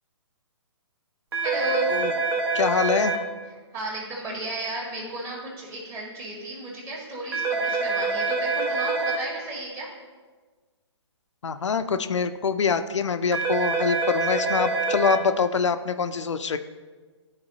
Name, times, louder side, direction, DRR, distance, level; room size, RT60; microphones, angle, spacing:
sound 1, 1.3-3.2 7.3-9.2 13.3-15.2, right 4 dB, 60° right, 1.3 m, -25 dB
voice 1, 1.4-1.9 3.5-9.9, right 2 dB, 25° right, -4 dB, 2.0 m, -33 dB
voice 2, 2.5-3.1 11.4-16.6, left 5 dB, 90° left, 9 dB, 0.4 m, -24 dB
11.5 x 4.0 x 2.8 m, 1.4 s
hypercardioid pair, 140°, 15 cm